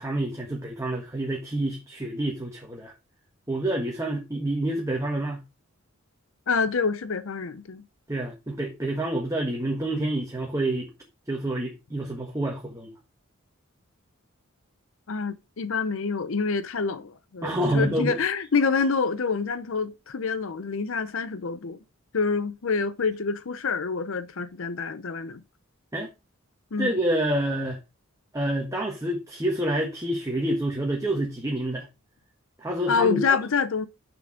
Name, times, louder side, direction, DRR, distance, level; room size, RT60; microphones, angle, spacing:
voice 1, 0.0-2.9 3.5-5.4 8.1-10.9 11.3-12.9 17.4-18.2 25.9-26.1 26.8-27.8 28.3-31.9 32.6-33.4, right 1 dB, 15° right, 1.5 m, -28 dB
voice 2, 6.5-7.8 15.1-21.8 22.1-25.4 26.7-27.0 32.9-33.9, left 5 dB, 65° left, 0.6 m, -27 dB
6.9 x 6.2 x 5.0 m
head